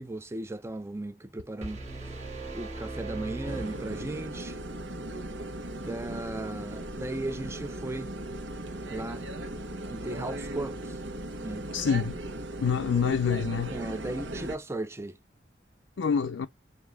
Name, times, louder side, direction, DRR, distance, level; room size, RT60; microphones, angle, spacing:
voice 1, 0.0-2.1 2.5-4.6 5.8-8.1 8.9-9.2 9.9-11.0 11.4-11.7 13.7-15.2, right 2 dB, 15° right, 0.4 m, -36 dB
sound 1, 1.6-4.6, right 3 dB, 40° right, 1.5 m, -39 dB
sound 2, 3.5-14.6, right 1 dB, 85° right, 1.0 m, -38 dB
voice 2, 11.7-12.2 12.6-13.7 16.0-16.5, left 6 dB, 85° left, 0.5 m, -26 dB
6.7 x 2.7 x 2.2 m
head